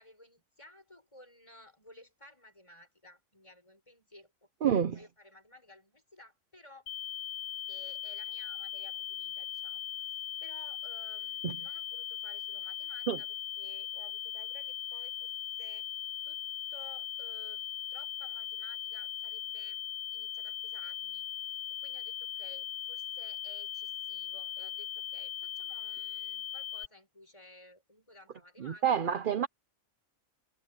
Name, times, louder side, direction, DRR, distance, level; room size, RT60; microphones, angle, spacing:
voice 1, 0.0-6.9 7.7-15.3 15.6-15.9 16.2-16.4 16.7-19.8 20.1-29.2, left 1 dB, 20° left, 6.5 m, -56 dB
voice 2, 4.6-5.0 11.4-11.5 13.1-13.2 28.6-29.5, right 8 dB, 50° right, 0.7 m, -28 dB
sound 1, 6.9-26.9, left 10 dB, 60° left, 0.5 m, -39 dB
omnidirectional pair, 1.4 m